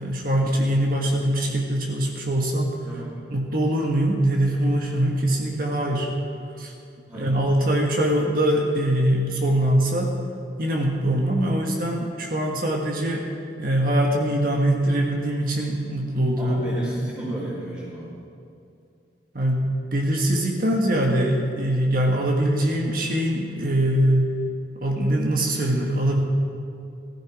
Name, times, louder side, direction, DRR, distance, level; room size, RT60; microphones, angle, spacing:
voice 1, 0.0-2.7 3.3-6.1 6.6-6.7 7.1-10.1 10.6-13.2 13.6-16.6 19.3-24.4 24.7-26.2, right 1 dB, 55° right, 0 dB, 1.5 m, -22 dB
voice 2, 2.8-3.2 7.1-7.4 16.4-18.1, right 1 dB, 25° right, -9 dB, 2.8 m, -33 dB
15.5 x 15.0 x 4.8 m, 2.6 s
head